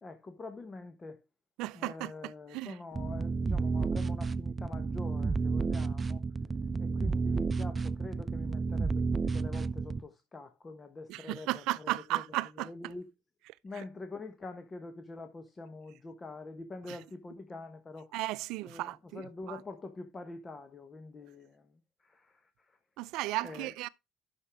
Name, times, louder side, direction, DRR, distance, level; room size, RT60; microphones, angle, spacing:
voice 1, 0.0-1.2 1.7-6.3 6.8-13.1 13.6-18.1 18.6-22.8 23.4-23.7, left 3 dB, 30° left, 1.3 m, -45 dB
voice 2, 1.6-2.1 2.5-2.7 11.1-12.9 16.9-17.0 18.1-19.2 19.5-19.6 23.0-23.9, right 18 dB, 75° right, 0.5 m, -35 dB
sound 1, 3.0-10.0, right 4 dB, 30° right, 0.6 m, -31 dB
9.7 x 6.4 x 3.6 m
hypercardioid pair, 65°, 0 cm